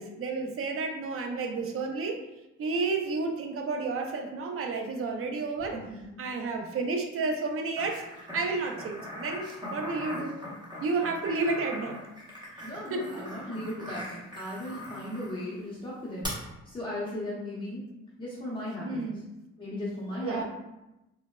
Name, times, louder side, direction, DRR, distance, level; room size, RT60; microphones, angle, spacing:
voice 1, 0.0-2.2 2.6-5.8 6.2-8.0 8.3-10.4 10.8-12.0 12.9-13.2 18.8-19.2 20.2-20.4, right 3 dB, 50° right, 3 dB, 0.5 m, -31 dB
sound 1, 7.8-15.4 16.2-16.3, equal, 15° right, 0.9 m, -41 dB
voice 2, 12.6-16.3 16.7-17.8 18.2-19.1 19.6-20.4, left 1 dB, 15° left, -9 dB, 0.7 m, -36 dB
3.2 x 2.1 x 2.2 m, 0.95 s
cardioid pair, 90°, 30 cm